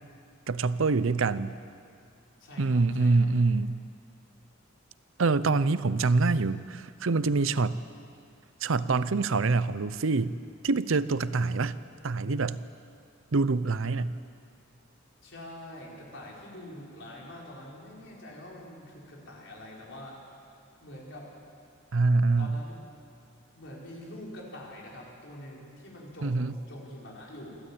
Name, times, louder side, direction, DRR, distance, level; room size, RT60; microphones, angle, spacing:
voice 1, 0.5-1.5 2.6-3.8 5.2-7.8 8.6-10.3 10.6-11.8 12.0-12.6 13.3-14.2 21.9-22.6 26.2-26.6, right 3 dB, 70° right, 15 dB, 0.6 m, -25 dB
voice 2, 2.4-3.3 15.2-20.2 20.8-21.3 22.4-22.8 23.5-27.5, left 1 dB, 65° left, -3 dB, 5.0 m, -45 dB
27.5 x 13.0 x 8.6 m, 2.3 s
head